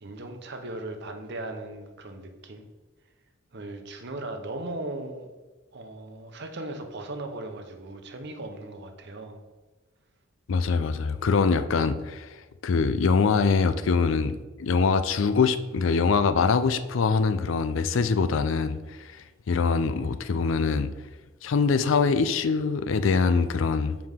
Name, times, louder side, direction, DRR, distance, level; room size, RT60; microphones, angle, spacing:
voice 1, 0.0-2.6 3.5-5.3 5.7-9.4, right 2 dB, 55° right, 0.8 m, -38 dB
voice 2, 10.5-12.3 12.6-19.1 19.5-20.9 21.4-23.9, left 5 dB, 70° left, 0.4 m, -23 dB
7.5 x 4.7 x 3.6 m
head